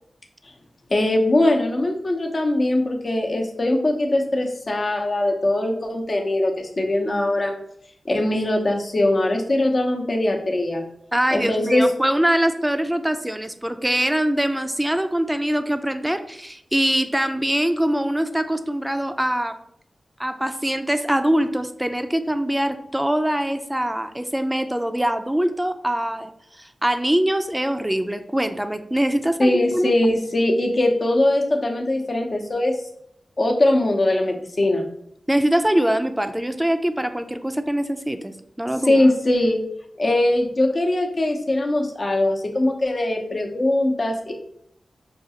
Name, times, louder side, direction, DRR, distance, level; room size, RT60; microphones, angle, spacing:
voice 1, 0.9-7.5 8.0-10.8 11.3-11.9 29.4-32.8 33.4-34.8 38.9-39.6 40.0-44.3, left 1 dB, 50° left, 2 dB, 0.7 m, -21 dB
voice 2, 11.1-19.6 20.2-26.3 26.6-29.9 35.3-39.0, right 1 dB, 10° right, 9 dB, 0.4 m, -23 dB
5.1 x 2.3 x 2.8 m, 0.73 s
cardioid pair, 45°, 0 cm